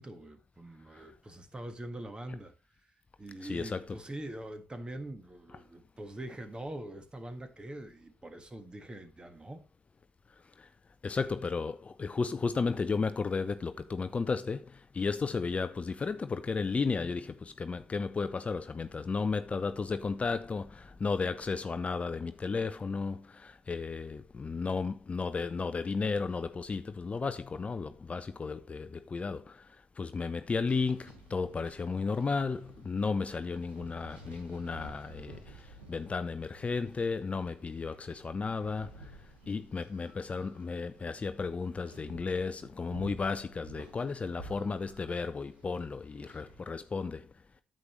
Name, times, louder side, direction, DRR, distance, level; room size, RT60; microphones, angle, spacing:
voice 1, 0.0-2.5 3.2-9.6, right 1 dB, 20° right, 1.6 m, -43 dB
voice 2, 3.4-4.0 11.0-14.6 14.9-29.5 30.0-35.4 35.9-38.9 39.5-47.2, left 4 dB, 30° left, 0.6 m, -33 dB
sound 1, 30.6-46.6, right 2 dB, 85° right, 3.0 m, -53 dB
9.5 x 7.6 x 3.2 m
hypercardioid pair, 50°, 4 cm